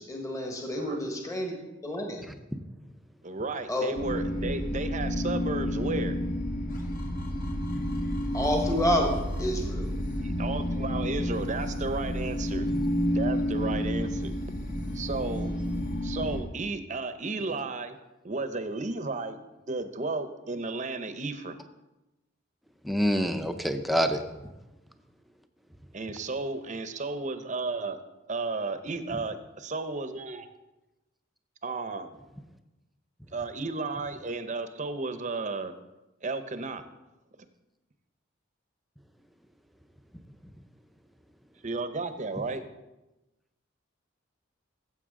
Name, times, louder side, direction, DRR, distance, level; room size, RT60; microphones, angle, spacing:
voice 1, 0.0-1.5 1.8-2.2 3.7-3.9 4.3-4.4 8.3-9.9, left 1 dB, 15° left, 1 dB, 1.4 m, -29 dB
voice 2, 3.2-6.2 10.2-12.7 13.1-14.4 14.9-15.5 16.0-18.0 18.2-19.4 19.7-21.6 25.9-28.0 28.3-30.5 31.6-32.2 33.3-35.7 36.2-36.8 41.6-42.6, right 3 dB, 40° right, 10 dB, 0.7 m, -33 dB
sound 1, 3.9-16.4, equal, 45° left, 1.4 m, -30 dB
voice 3, 12.7-13.1 22.8-24.2, equal, ahead, 6 dB, 0.6 m, -27 dB
14.5 x 7.7 x 3.7 m, 1.0 s
head